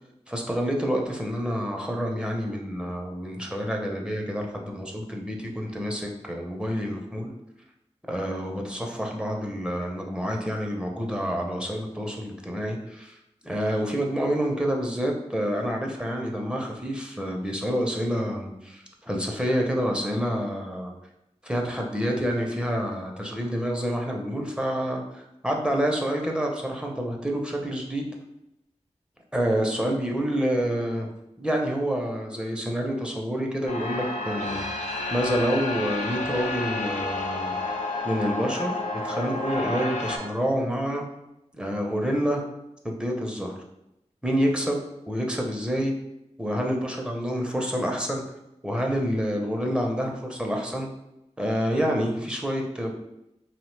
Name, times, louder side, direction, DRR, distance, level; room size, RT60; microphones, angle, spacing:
voice 1, 0.3-7.3 8.1-13.2 13.4-20.9 21.4-28.1 29.3-31.1 31.4-34.8 35.1-37.5 38.0-38.7 39.0-41.0 41.5-42.4 42.8-43.6 44.2-45.9 46.4-48.2 48.6-50.9 51.4-52.9, equal, 10° right, 0 dB, 0.5 m, -28 dB
sound 1, 33.7-40.2, left 2 dB, 85° left, 0.5 m, -30 dB
3.0 x 2.1 x 3.1 m, 0.86 s
wide cardioid pair, 70°, 12 cm